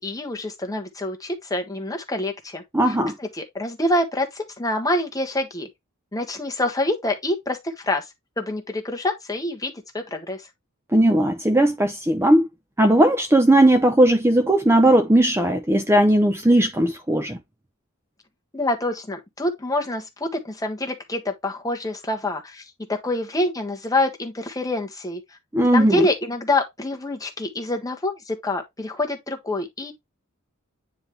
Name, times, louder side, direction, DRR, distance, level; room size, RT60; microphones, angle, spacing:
voice 1, 0.0-5.7 6.1-8.1 8.4-10.4 18.5-25.2 25.7-29.9, left 2 dB, 15° left, 1.4 m, -26 dB
voice 2, 2.7-3.1 10.9-12.4 12.8-17.4 25.5-26.1, right 1 dB, 10° right, 0.7 m, -17 dB
9.4 x 3.6 x 3.1 m
head